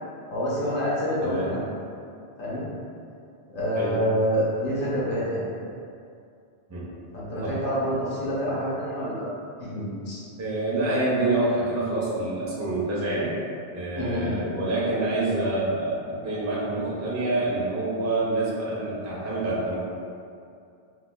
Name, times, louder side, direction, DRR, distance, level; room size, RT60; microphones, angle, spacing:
voice 1, 0.3-1.7 2.4-2.6 3.5-5.4 7.1-9.3 9.6-10.2 13.9-14.4, equal, 55° left, -7 dB, 1.0 m, -27 dB
voice 2, 1.2-1.5 3.7-3.9 6.7-6.9 7.4-7.6 10.4-13.3 13.7-19.7, right 2 dB, 20° right, -6 dB, 0.4 m, -27 dB
4.2 x 2.4 x 2.2 m, 2.4 s
omnidirectional pair, 1.1 m